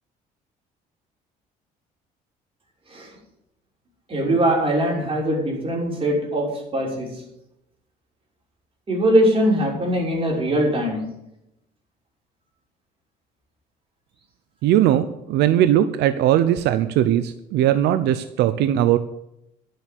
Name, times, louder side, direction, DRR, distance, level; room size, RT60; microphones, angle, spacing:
voice 1, 4.1-7.1 8.9-11.0, right 1 dB, 30° right, -2 dB, 5.9 m, -21 dB
voice 2, 14.6-19.0, right 11 dB, 80° right, 11 dB, 0.8 m, -19 dB
12.0 x 7.8 x 8.4 m, 0.84 s
cardioid pair, 110°, 17 cm